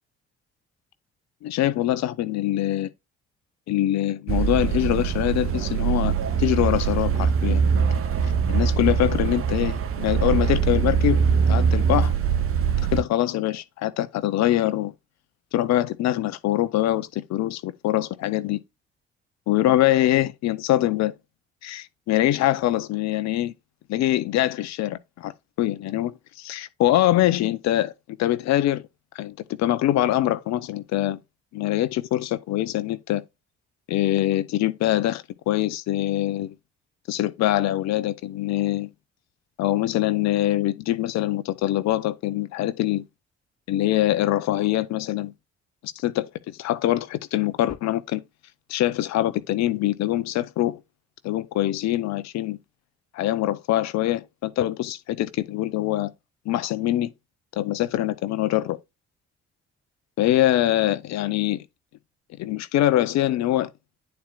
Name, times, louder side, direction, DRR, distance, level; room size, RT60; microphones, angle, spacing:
voice 1, 1.4-2.9 3.7-7.9 8.5-12.1 12.9-14.9 15.5-18.6 19.5-21.2 21.6-23.5 23.9-25.3 25.6-27.9 28.2-28.8 29.1-31.2 31.5-33.2 33.9-36.5 37.1-38.9 39.6-43.0 43.7-45.3 45.8-48.2 48.7-50.8 51.2-52.6 53.1-56.1 56.5-57.1 57.6-58.8 60.2-61.6 62.4-63.7, left 14 dB, 55° left, 0.8 m, -24 dB
sound 1, 4.3-13.0, right 7 dB, 40° right, 0.9 m, -22 dB
10.5 x 4.3 x 2.4 m
figure-of-eight pair, 45°, 33 cm